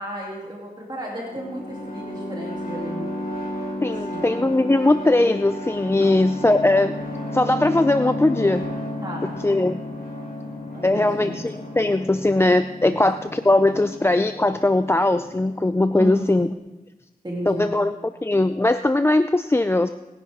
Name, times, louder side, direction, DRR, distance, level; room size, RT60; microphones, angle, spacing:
voice 1, 0.0-3.1 4.1-4.4 6.0-6.1 9.0-9.3 10.7-11.4 12.9-13.0 15.9-16.3 17.2-17.7, right 1 dB, 30° right, -3 dB, 2.7 m, -33 dB
sound 1, 1.1-16.5, left 1 dB, 80° left, 4.5 m, -33 dB
voice 2, 3.8-7.0 7.3-8.7 9.2-9.8 10.8-16.5 17.5-19.9, left 2 dB, 15° left, 10 dB, 0.4 m, -20 dB
20.0 x 10.5 x 3.5 m, 1.0 s
wide cardioid pair, 70°, 15 cm